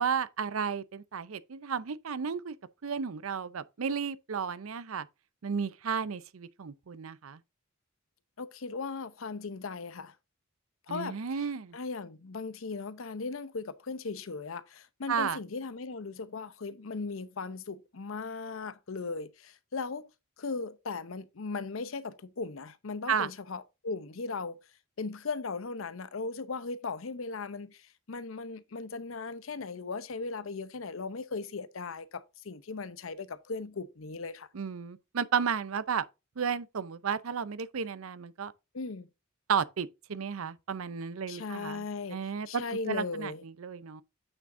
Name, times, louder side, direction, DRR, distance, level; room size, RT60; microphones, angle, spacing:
voice 1, 0.0-2.5 2.8-5.1 5.4-7.4 10.9-11.8 15.1-15.4 23.1-23.3 34.5-36.0 36.4-38.5 39.5-41.8 42.1-44.0, right 6 dB, 80° right, 0.6 m, -33 dB
voice 2, 8.4-10.1 10.9-11.2 11.7-20.1 20.4-24.6 25.0-34.5 38.7-39.1 41.3-43.4, left 4 dB, 70° left, 0.7 m, -38 dB
8.9 x 6.2 x 2.6 m
head